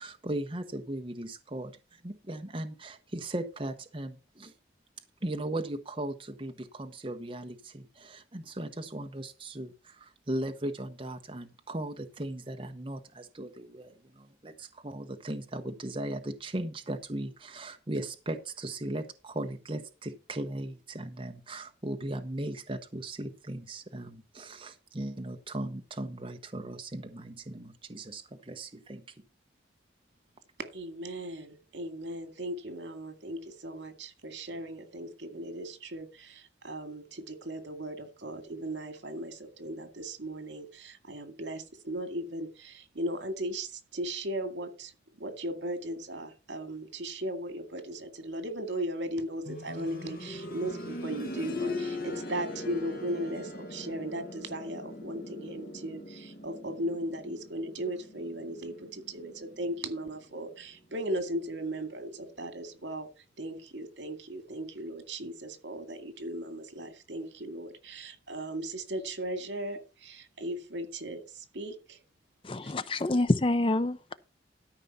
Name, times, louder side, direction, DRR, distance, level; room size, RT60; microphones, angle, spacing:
voice 1, 0.0-4.5 5.2-29.1, right 1 dB, 30° right, 1.0 m, -38 dB
voice 2, 30.7-44.9 45.2-63.1 63.4-72.0 72.6-72.7, right 1 dB, 80° right, 2.2 m, -37 dB
sound 1, 49.5-60.2 61.6-61.7, left 2 dB, 50° left, 1.9 m, -40 dB
voice 3, 72.4-74.1, left 2 dB, 30° left, 0.5 m, -27 dB
13.0 x 5.3 x 5.7 m
head